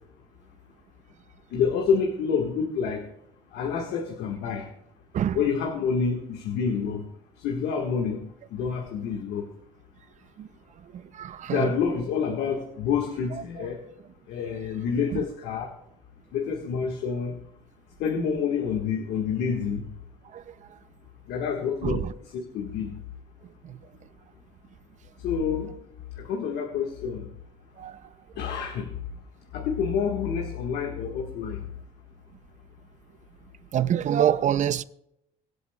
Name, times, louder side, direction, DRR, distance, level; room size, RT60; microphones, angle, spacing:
voice 1, 1.5-3.1 3.5-4.7 5.3-7.0 7.4-8.2 8.5-9.4 11.5-13.8 14.3-15.7 16.3-17.4 18.0-19.8 21.3-22.1 22.3-22.9 25.2-25.7 26.2-27.3 28.4-28.9 29.5-31.6, left 6 dB, 80° left, 1.7 m, -28 dB
voice 2, 11.1-11.7 21.8-22.1 23.6-23.8 27.8-28.0 33.7-34.8, right 10 dB, 45° right, 0.5 m, -25 dB
23.5 x 8.1 x 2.3 m
cardioid pair, 110°, 17 cm